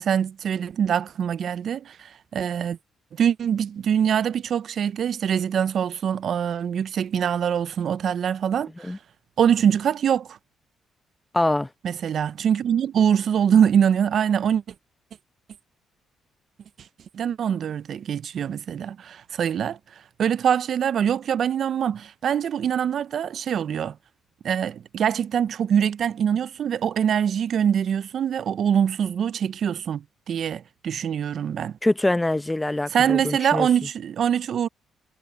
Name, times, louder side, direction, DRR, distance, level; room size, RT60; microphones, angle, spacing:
voice 1, 0.0-2.8 3.1-9.0 9.4-10.4 11.8-14.6 17.1-19.8 20.2-24.0 24.4-31.8 32.9-34.7, right 8 dB, 60° right, 0.4 m, -24 dB
voice 2, 11.3-11.7 31.8-33.7, left 2 dB, 10° left, 0.6 m, -24 dB
cardioid pair, 90°, 0 cm